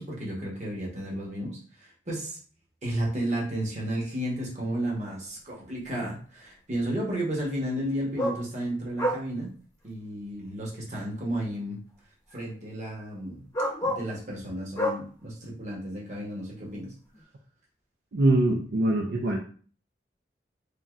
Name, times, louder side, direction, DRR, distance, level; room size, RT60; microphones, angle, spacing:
voice 1, 0.0-2.4 2.8-9.5 9.8-11.8 12.3-13.4 13.8-16.9, right 1 dB, 40° right, -3 dB, 1.0 m, -33 dB
sound 1, 5.4-5.5 8.2-8.4 9.0-9.2 10.5-10.6 12.3-12.4 13.5-14.1 14.8-15.0 17.1-17.2, equal, 20° left, 0.6 m, -28 dB
voice 2, 18.1-19.4, right 1 dB, 65° right, 0 dB, 0.4 m, -23 dB
3.3 x 2.6 x 2.4 m, 0.42 s
head